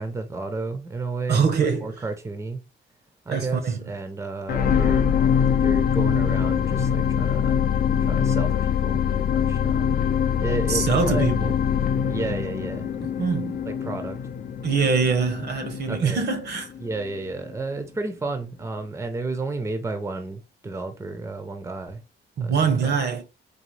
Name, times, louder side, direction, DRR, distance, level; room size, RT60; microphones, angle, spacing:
voice 1, 0.0-2.6 3.3-5.0 5.6-7.6 8.0-10.0 10.4-11.3 12.1-12.9 13.7-14.2 15.9-16.3 16.8-22.0 22.4-23.0, right 3 dB, 15° right, 0.5 m, -32 dB
voice 2, 1.3-1.9 3.3-3.8 10.7-11.5 13.2-13.6 14.6-16.7 22.4-23.2, right 5 dB, 60° right, 0.8 m, -23 dB
sound 1, 4.5-16.9 17.5-17.6, left 8 dB, 55° left, 0.4 m, -23 dB
4.0 x 2.9 x 3.1 m
wide cardioid pair, 135°, 19 cm